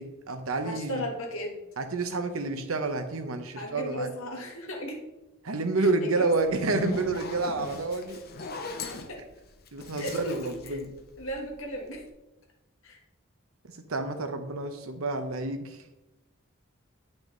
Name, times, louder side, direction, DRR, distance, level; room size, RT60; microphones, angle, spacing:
voice 1, 0.0-1.0 1.8-4.1 5.4-8.2 9.7-10.8 13.9-15.8, right 3 dB, 80° right, 7 dB, 0.9 m, -29 dB
voice 2, 0.6-1.6 3.6-5.0 5.8-6.3 9.1-9.2 10.0-10.8 11.2-12.0 12.8-13.0, equal, 75° left, 1 dB, 1.6 m, -36 dB
Zipper (clothing), 6.4-11.6, left 3 dB, 50° left, 0.9 m, -39 dB
8.9 x 5.8 x 3.9 m, 0.99 s
head